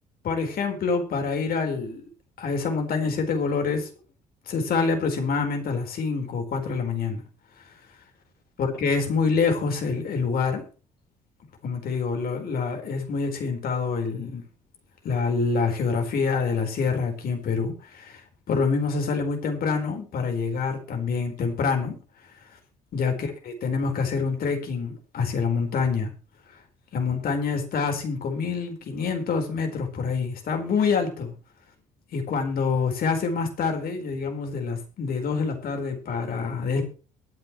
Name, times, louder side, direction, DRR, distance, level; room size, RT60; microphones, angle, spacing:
voice 1, 0.2-2.0 2.4-3.9 4.5-7.2 8.6-10.6 11.6-14.4 15.0-18.2 18.5-21.9 22.9-26.1 26.9-31.3 32.1-36.8, left 5 dB, 55° left, 4 dB, 4.6 m, -26 dB
22.5 x 8.1 x 3.2 m, 0.35 s
hypercardioid pair, 50°, 18 cm